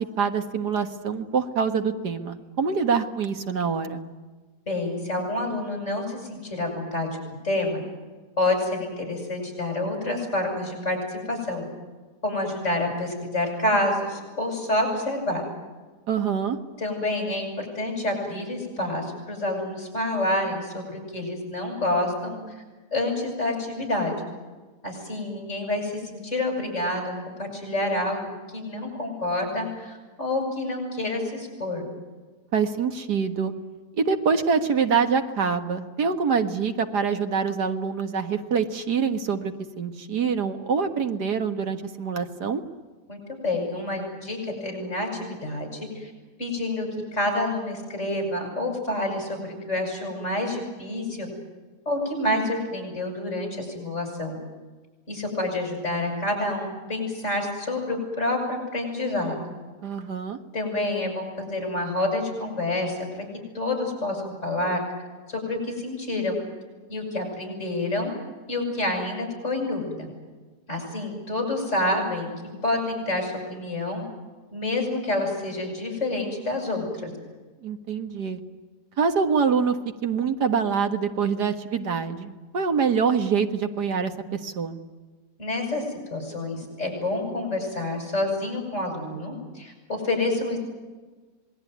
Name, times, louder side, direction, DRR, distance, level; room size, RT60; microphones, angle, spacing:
voice 1, 0.2-4.0 16.1-16.6 32.5-33.5 34.0-42.6 59.8-60.4 77.6-78.4 79.0-79.8 80.0-84.8, right 6 dB, 80° right, 7 dB, 2.2 m, -25 dB
voice 2, 4.7-7.1 7.4-7.8 8.4-11.6 12.2-15.4 16.8-22.4 22.9-24.1 24.8-31.8 43.1-46.1 46.4-46.9 47.1-51.3 51.8-54.4 55.1-59.5 60.5-63.2 63.5-64.8 65.3-66.4 66.9-68.1 68.5-70.1 70.7-72.3 72.6-74.0 74.5-77.1 85.4-85.8 86.1-90.6, left 2 dB, 45° left, 3 dB, 8.4 m, -28 dB
27.0 x 20.5 x 9.4 m, 1.3 s
omnidirectional pair, 1.7 m